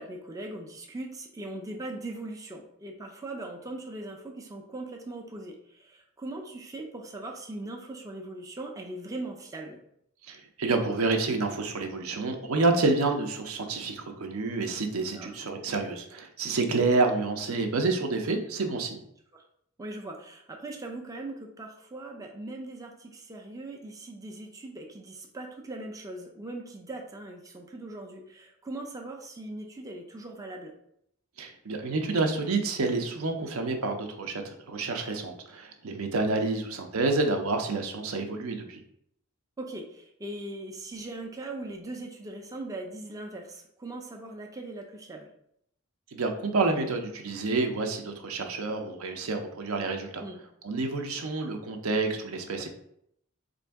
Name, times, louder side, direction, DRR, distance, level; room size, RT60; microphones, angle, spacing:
voice 1, 0.0-9.8 15.1-15.3 19.3-19.4 19.8-30.7 38.1-38.3 39.6-45.3 48.6-48.8 50.2-50.4 52.6-52.7, right 2 dB, 15° right, 1 dB, 0.4 m, -40 dB
voice 2, 10.3-19.0 31.4-38.8 46.1-50.2 50.6-52.7, right 3 dB, 70° right, 5 dB, 0.6 m, -28 dB
3.8 x 2.6 x 3.4 m, 0.72 s
head